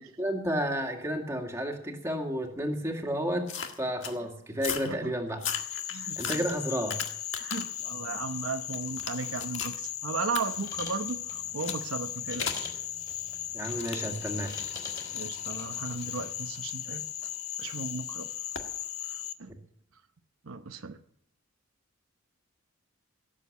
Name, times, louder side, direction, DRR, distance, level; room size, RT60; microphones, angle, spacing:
voice 1, 0.2-3.5 3.8-5.4 6.2-7.0 13.5-14.5, equal, 15° right, 1 dB, 2.1 m, -31 dB
sound 1, 3.5-4.2 4.6-4.9 5.3-7.8 8.2-9.8 10.3-10.4 11.6-11.8 12.4-12.7 13.6-17.5 18.5-18.7, left 7 dB, 60° left, 1.7 m, -38 dB
Frog, 5.5-19.3, left 11 dB, 80° left, 0.9 m, -37 dB
voice 2, 5.9-6.5 7.4-12.7 15.1-17.1 17.6-18.3 19.1-19.5 20.4-21.0, right 4 dB, 75° right, 7 dB, 0.9 m, -36 dB
sound 2, 10.5-16.4, left 3 dB, 20° left, 4.0 m, -46 dB
17.5 x 7.6 x 8.5 m, 0.69 s
head